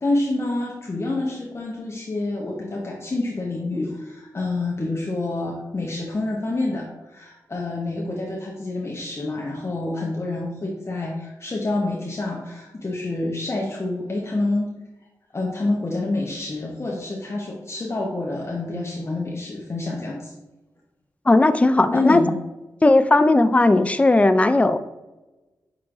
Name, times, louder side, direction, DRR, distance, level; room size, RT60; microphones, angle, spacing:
voice 1, 0.0-14.7 15.3-20.3 21.9-22.3, left 2 dB, 40° left, -2 dB, 0.8 m, -27 dB
voice 2, 21.3-22.2 22.8-24.8, left 2 dB, 20° left, 11 dB, 0.3 m, -16 dB
5.8 x 2.9 x 2.6 m, 1.1 s
cardioid pair, 50°, 7 cm